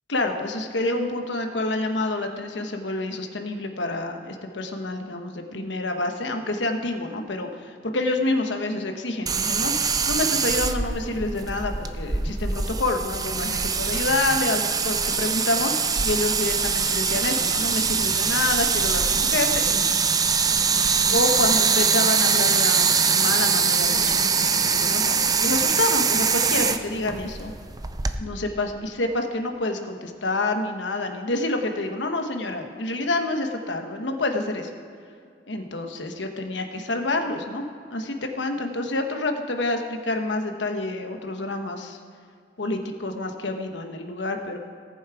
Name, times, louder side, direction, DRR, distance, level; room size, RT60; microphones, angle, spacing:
voice 1, 0.1-15.7 16.0-19.9 21.1-27.5 28.2-34.7 35.5-37.6 37.9-42.0 42.6-44.6, left 2 dB, 75° left, 5 dB, 1.2 m, -28 dB
sound 1, 9.3-28.2, right 5 dB, 20° right, 0.5 m, -23 dB
18.5 x 7.3 x 4.8 m, 2.2 s
head